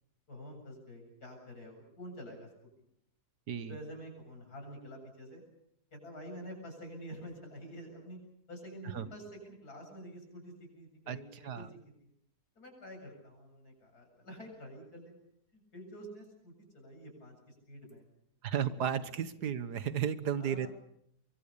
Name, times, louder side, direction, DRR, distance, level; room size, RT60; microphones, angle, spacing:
voice 1, 0.3-2.5 2.8-2.9 3.7-5.4 5.9-8.2 8.5-12.1 12.6-15.2 15.5-18.0 18.5-18.7 19.4-19.6 20.4-20.7, equal, 70° left, 3 dB, 8.1 m, -48 dB
voice 2, 18.4-20.7, right 8 dB, 85° right, 13 dB, 1.8 m, -33 dB
24.0 x 23.5 x 6.9 m, 0.72 s
omnidirectional pair, 1.7 m